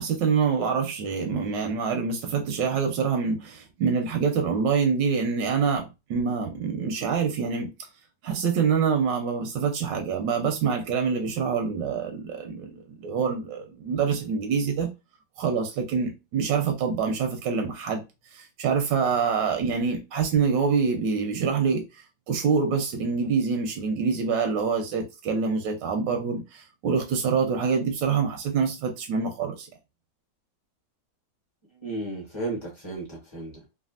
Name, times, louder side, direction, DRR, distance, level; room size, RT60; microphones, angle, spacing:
voice 1, 0.0-7.7 8.2-14.9 15.4-18.0 18.3-21.8 22.3-29.7, right 6 dB, 85° right, 1.3 m, -26 dB
voice 2, 31.7-33.7, right 2 dB, 25° left, 0.7 m, -34 dB
3.3 x 2.4 x 2.4 m
omnidirectional pair, 1.9 m